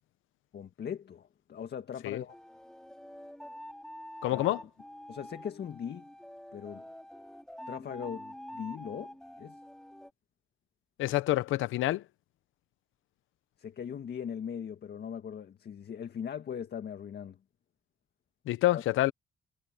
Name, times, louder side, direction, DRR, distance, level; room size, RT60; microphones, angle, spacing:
voice 1, 0.5-2.4 4.3-4.4 5.1-6.0 6.5-6.8 7.7-9.1 9.4-9.6 13.6-17.4 18.7-18.8, left 8 dB, 55° left, 1.9 m, -39 dB
sound 1, 2.3-10.1, equal, 5° left, 4.1 m, -47 dB
voice 2, 4.2-4.6 11.0-12.0 18.5-19.1, left 16 dB, 85° left, 0.9 m, -27 dB
cardioid pair, 90°, 20 cm